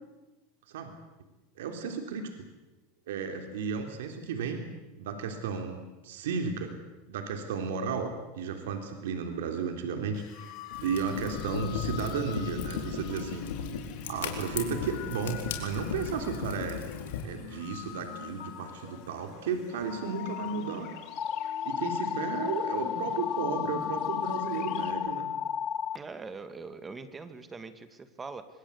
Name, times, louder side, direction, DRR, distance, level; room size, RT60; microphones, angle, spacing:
voice 1, 1.6-2.3 3.1-4.6 5.0-6.7 7.1-10.5 10.8-13.4 14.1-16.8 17.2-20.9 21.6-25.3, right 5 dB, 80° right, 5 dB, 3.4 m, -34 dB
sound 1, 10.1-24.9, left 10 dB, 55° left, 3.7 m, -43 dB
Fire, 10.7-17.2, left 7 dB, 85° left, 4.3 m, -37 dB
sound 2, 21.2-26.0, left 8 dB, 30° left, 0.9 m, -32 dB
voice 2, 25.9-28.5, right 4 dB, 15° right, 10 dB, 2.3 m, -42 dB
25.0 x 20.5 x 8.3 m, 1.1 s
supercardioid pair, 120°, 0 cm